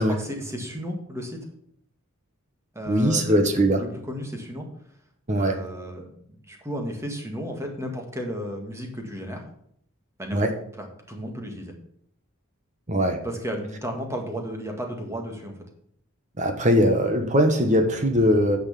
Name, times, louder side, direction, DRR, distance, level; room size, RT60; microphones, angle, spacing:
voice 1, 0.0-1.4 2.7-3.5 3.7-4.7 5.4-9.4 10.2-10.5 10.8-11.8 13.2-15.5, equal, 15° right, 2 dB, 1.9 m, -33 dB
voice 2, 2.9-3.8 5.3-5.5 10.3-10.5 12.9-13.2 16.4-18.6, equal, 35° right, 5 dB, 1.3 m, -20 dB
9.6 x 6.5 x 7.0 m, 0.69 s
head